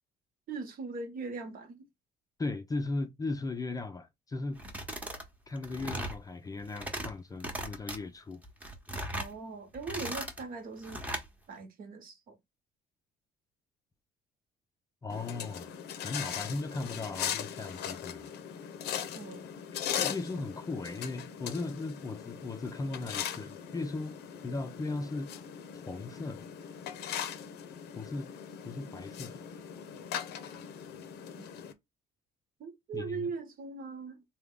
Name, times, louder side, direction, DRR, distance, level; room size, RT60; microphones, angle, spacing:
voice 1, 0.5-1.9 9.2-11.0 11.5-12.4 19.1-19.4 31.3-31.5 32.6-34.2, right 4 dB, 55° right, 1.0 m, -40 dB
voice 2, 2.4-4.6 5.5-8.4 15.0-15.7 16.0-18.3 20.0-24.2 24.4-25.3 25.9-26.5 27.9-28.3 28.6-29.4 32.9-33.3, left 3 dB, 20° left, 0.4 m, -37 dB
sound 1, 4.6-5.3 5.6-6.2 6.6-7.1 7.4-8.0 8.4-9.3 9.7-10.4 10.8-11.3, right 1 dB, 10° right, 0.8 m, -38 dB
sound 2, 15.1-31.7, left 9 dB, 75° left, 0.6 m, -39 dB
3.3 x 2.2 x 3.7 m
cardioid pair, 110°, 17 cm